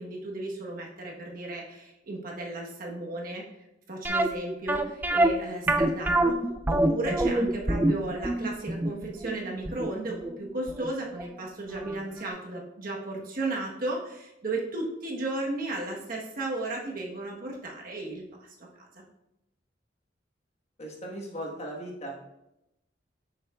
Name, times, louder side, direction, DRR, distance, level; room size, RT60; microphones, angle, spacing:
voice 1, 0.0-3.4 3.9-18.2 18.6-18.7 18.9-19.0, right 2 dB, 50° right, -2 dB, 1.2 m, -34 dB
sound 1, 4.0-10.9 11.2-11.3 11.8-12.0 12.3-12.4, right 1 dB, 10° right, 0.3 m, -25 dB
voice 2, 20.8-22.3, right 1 dB, 35° left, -1 dB, 1.4 m, -38 dB
7.2 x 6.5 x 2.4 m, 0.86 s
head